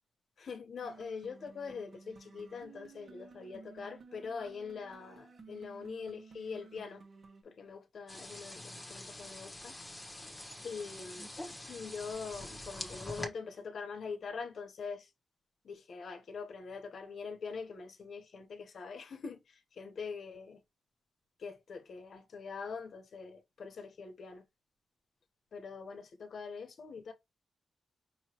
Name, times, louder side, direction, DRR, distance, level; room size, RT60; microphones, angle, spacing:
voice 1, 0.4-7.0 7.4-9.8 10.6-15.1 15.6-20.6 21.4-24.4 25.5-27.1, left 5 dB, 60° left, 1.0 m, -43 dB
sound 1, 0.8-7.4, right 4 dB, 45° right, 1.3 m, -55 dB
sound 2, 8.1-13.3, left 1 dB, 10° left, 1.2 m, -45 dB
5.6 x 3.0 x 2.9 m
wide cardioid pair, 140°, 0 cm